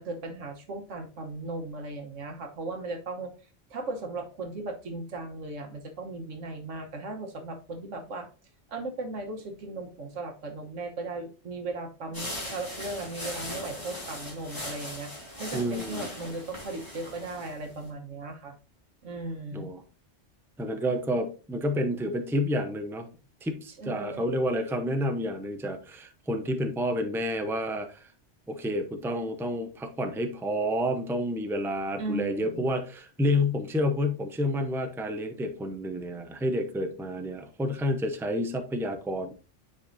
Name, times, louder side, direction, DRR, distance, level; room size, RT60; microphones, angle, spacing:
voice 1, 0.0-3.3 3.7-8.3 8.7-15.1 15.4-18.5 19.0-19.7 23.8-24.3 32.0-32.7, right 2 dB, 85° right, 1.5 m, -37 dB
sound 1, 12.1-17.9, left 1 dB, 15° left, 2.8 m, -39 dB
voice 2, 15.5-16.1 19.5-19.8 20.6-23.1 23.4-28.0 28.5-39.3, equal, 5° right, 0.5 m, -29 dB
10.0 x 4.8 x 2.6 m
omnidirectional pair, 1.2 m